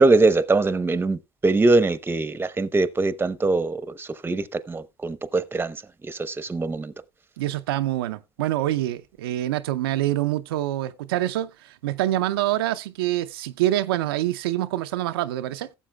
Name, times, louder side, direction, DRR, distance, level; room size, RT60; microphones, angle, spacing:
voice 1, 0.0-6.9, right 3 dB, 20° right, 0.8 m, -22 dB
voice 2, 7.4-15.7, right 14 dB, 80° right, 0.5 m, -26 dB
17.0 x 7.3 x 2.2 m
hypercardioid pair, 70°, 12 cm